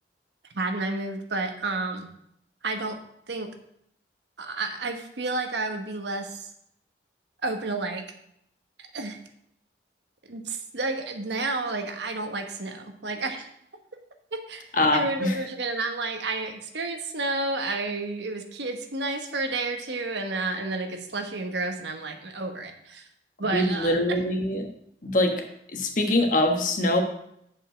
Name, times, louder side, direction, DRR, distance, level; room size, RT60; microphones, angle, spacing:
voice 1, 0.5-2.1 2.6-3.0 3.3-3.5 4.4-6.5 7.4-8.0 8.8-9.2 10.3-13.5 14.3-23.1 23.4-24.2, right 3 dB, 75° right, 5 dB, 1.2 m, -31 dB
voice 2, 14.7-15.4 23.4-24.6 25.0-25.3 25.7-27.0, left 1 dB, 45° left, 4 dB, 1.3 m, -23 dB
7.0 x 5.5 x 7.4 m, 0.73 s
head